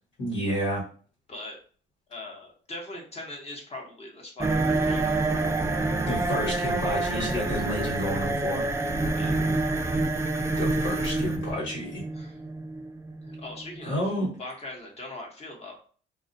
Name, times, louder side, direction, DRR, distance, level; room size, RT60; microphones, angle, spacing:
voice 1, 0.2-0.8 6.1-8.6 10.6-12.0 13.8-14.3, equal, 75° left, -4 dB, 1.2 m, -30 dB
voice 2, 2.1-5.1 9.1-9.5 12.1-12.4 13.2-14.0 14.4-15.8, left 2 dB, 30° left, 0 dB, 0.8 m, -41 dB
sound 1, 4.4-14.0, right 2 dB, 15° right, 0.3 m, -27 dB
2.3 x 2.1 x 2.5 m, 0.43 s
cardioid pair, 90°, 20 cm